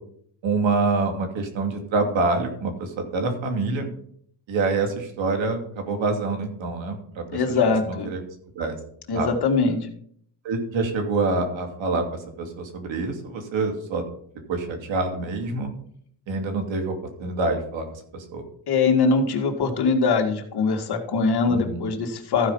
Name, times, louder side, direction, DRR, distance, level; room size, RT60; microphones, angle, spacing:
voice 1, 0.4-3.9 4.5-7.3 7.9-8.2 8.5-8.8 9.1-9.3 10.4-14.0 14.5-15.7 16.3-17.9 18.1-18.4 21.5-21.9, right 3 dB, 65° right, 4 dB, 2.6 m, -26 dB
voice 2, 7.3-8.1 9.1-9.9 18.7-22.5, left 4 dB, 50° left, 3 dB, 2.2 m, -22 dB
14.5 x 5.1 x 5.5 m, 0.64 s
cardioid pair, 110°, 49 cm